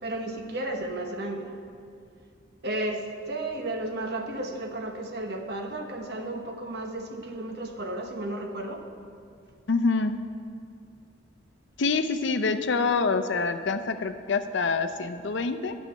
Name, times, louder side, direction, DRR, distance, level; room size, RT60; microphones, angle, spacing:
voice 1, 0.0-1.5 2.6-8.8, right 1 dB, 55° right, 3 dB, 1.0 m, -33 dB
voice 2, 9.7-10.2 11.8-15.8, left 4 dB, 65° left, 9 dB, 0.6 m, -26 dB
9.2 x 6.5 x 8.4 m, 2.3 s
head